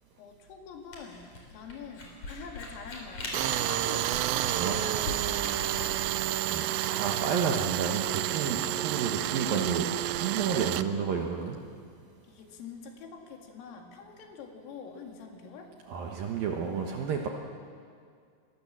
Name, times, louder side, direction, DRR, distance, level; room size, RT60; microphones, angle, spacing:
voice 1, 0.2-1.2 1.5-6.4 12.3-15.7, left 5 dB, 85° left, 3 dB, 4.8 m, -45 dB
Camera, 0.9-6.1, left 2 dB, 35° left, 5.2 m, -41 dB
Tools, 3.3-10.8, right 14 dB, 85° right, 2.5 m, -30 dB
voice 2, 6.5-11.6 15.9-17.3, right 6 dB, 70° right, 1 dB, 2.3 m, -31 dB
25.0 x 21.0 x 7.4 m, 2.2 s
omnidirectional pair, 5.8 m